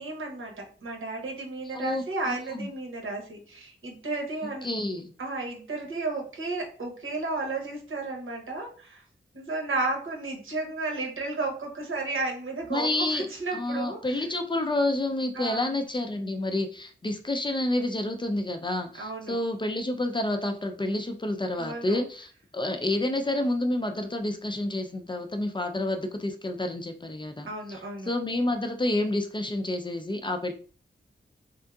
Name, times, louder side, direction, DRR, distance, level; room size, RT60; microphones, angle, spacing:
voice 1, 0.0-4.7 5.2-9.0 9.3-14.2 15.3-15.7 19.0-19.4 21.6-22.0 27.5-28.1, right 3 dB, 80° right, 0 dB, 0.9 m, -33 dB
voice 2, 1.7-2.7 4.4-5.1 12.7-13.3 13.5-30.5, left 1 dB, 25° left, 5 dB, 0.4 m, -29 dB
3.5 x 2.6 x 2.3 m, 0.42 s
wide cardioid pair, 70°, 21 cm